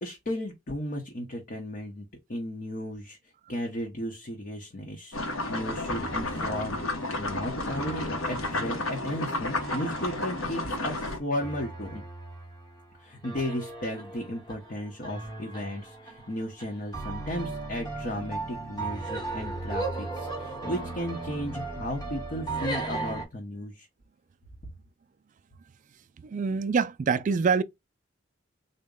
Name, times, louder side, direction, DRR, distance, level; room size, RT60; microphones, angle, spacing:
voice 1, 0.0-3.2 3.5-12.0 13.0-23.9, left 1 dB, 45° left, 0.8 m, -35 dB
sound 1, 5.1-11.2, left 2 dB, 85° left, 1.0 m, -32 dB
sound 2, 5.9-23.2, right 2 dB, 20° left, 1.0 m, -37 dB
voice 2, 26.2-27.6, right 5 dB, 40° right, 0.3 m, -25 dB
3.9 x 2.1 x 3.6 m
head